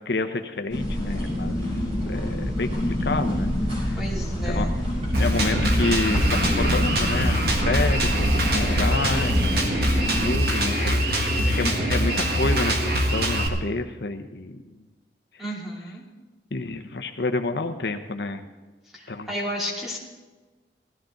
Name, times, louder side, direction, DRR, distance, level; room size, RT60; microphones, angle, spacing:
voice 1, 0.0-1.7 2.1-3.5 3.8-4.0 4.5-4.7 5.2-14.6 16.5-18.4 19.1-19.3, left 3 dB, 75° left, 7 dB, 0.8 m, -29 dB
sound 1, 0.7-10.4, left 1 dB, 35° right, 5.3 m, -27 dB
voice 2, 4.0-4.7 15.4-16.0 18.9-20.0, equal, ahead, -4 dB, 2.6 m, -32 dB
Drum kit, 5.1-13.5, equal, 60° right, 1.9 m, -23 dB
17.0 x 14.0 x 3.9 m, 1.3 s
head